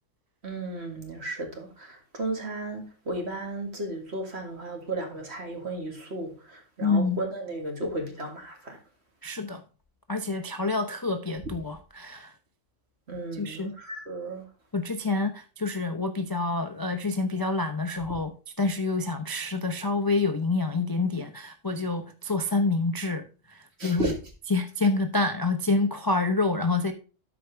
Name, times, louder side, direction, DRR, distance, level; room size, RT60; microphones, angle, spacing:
voice 1, 0.4-8.8 13.1-14.5 23.8-24.1, right 2 dB, 50° right, 2.3 m, -34 dB
voice 2, 6.8-7.2 9.2-9.6 10.1-12.3 13.3-13.7 14.7-24.1 24.5-26.9, left 3 dB, 25° left, 0.5 m, -27 dB
13.0 x 4.9 x 3.4 m
omnidirectional pair, 1.4 m